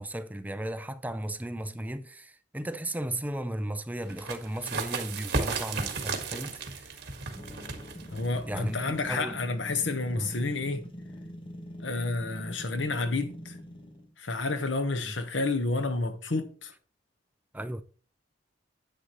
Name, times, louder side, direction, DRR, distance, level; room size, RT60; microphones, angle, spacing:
voice 1, 0.0-7.0 8.5-9.3 10.2-10.3 15.0-15.1 17.5-17.8, right 1 dB, 10° right, 0.5 m, -35 dB
sound 1, 4.1-9.4, right 4 dB, 60° right, 1.7 m, -35 dB
sound 2, 7.3-14.1, equal, 30° left, 1.3 m, -44 dB
voice 2, 8.1-10.8 11.8-13.5 14.2-16.7, left 3 dB, 85° left, 1.2 m, -30 dB
10.0 x 8.7 x 3.1 m
head